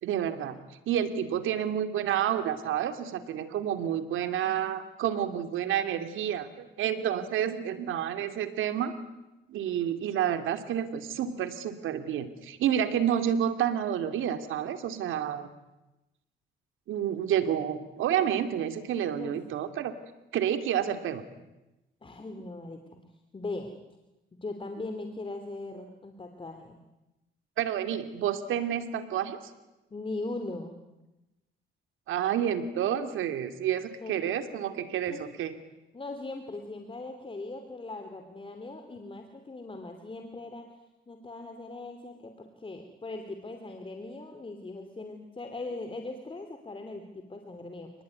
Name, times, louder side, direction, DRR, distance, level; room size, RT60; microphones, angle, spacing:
voice 1, 0.0-0.6 0.9-8.9 9.5-15.5 16.9-19.9 20.3-21.2 27.6-29.4 32.1-35.6, right 9 dB, 85° right, 9 dB, 2.7 m, -29 dB
voice 2, 22.0-23.0 23.3-23.7 24.4-26.8 29.9-30.8 34.0-34.1 35.1-35.2 35.9-40.7 41.1-47.9, left 2 dB, 25° left, 6 dB, 3.1 m, -39 dB
28.5 x 20.0 x 9.6 m, 0.98 s
cardioid pair, 90°, 20 cm